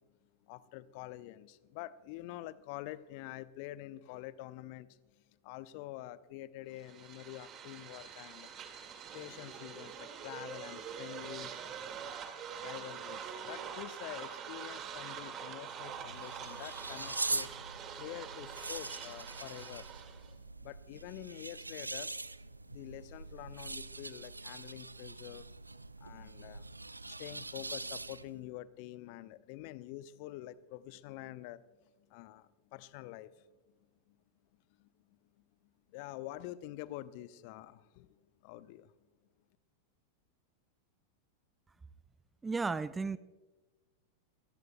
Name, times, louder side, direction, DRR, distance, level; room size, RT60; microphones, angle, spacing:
voice 1, 0.4-8.5 8.8-11.5 12.5-19.9 20.3-22.1 22.7-25.5 25.8-26.7 27.0-33.5 34.1-34.2 34.8-35.2 35.9-38.9, left 15 dB, 45° left, 17 dB, 0.6 m, -47 dB
sound 1, 6.8-20.3, right 7 dB, 30° right, 2.0 m, -45 dB
sound 2, 15.7-28.4, right 2 dB, 80° right, 0.4 m, -43 dB
voice 2, 42.4-43.2, right 4 dB, 10° right, 18 dB, 0.5 m, -33 dB
26.0 x 18.5 x 2.2 m, 1.2 s
figure-of-eight pair, 90°, 0 cm